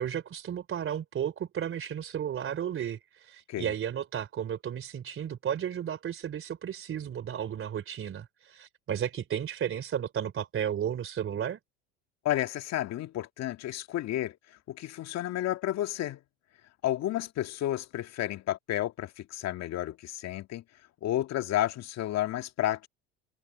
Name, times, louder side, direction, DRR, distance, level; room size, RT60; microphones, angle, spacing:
voice 1, 0.0-11.6, right 9 dB, 35° right, 3.2 m, -33 dB
voice 2, 12.2-14.4 14.7-16.2 16.8-20.6 21.0-22.9, left 13 dB, 45° left, 1.9 m, -31 dB
hypercardioid pair, 85°, 35 cm